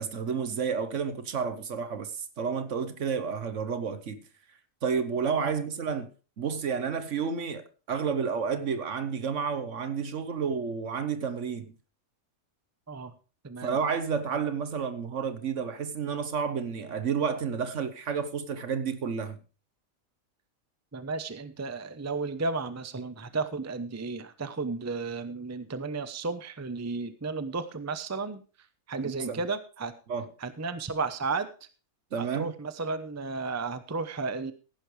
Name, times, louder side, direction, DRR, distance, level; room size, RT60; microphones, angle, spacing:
voice 1, 0.0-4.2 4.8-6.1 6.4-11.7 13.6-19.4 29.2-29.4 30.1-30.3 32.1-32.5, right 6 dB, 60° right, 1.3 m, -30 dB
voice 2, 13.4-13.8 20.9-28.4 28.9-29.9 30.4-31.5 32.2-34.5, right 4 dB, 15° right, 0.6 m, -33 dB
15.0 x 11.0 x 3.2 m
omnidirectional pair, 1.5 m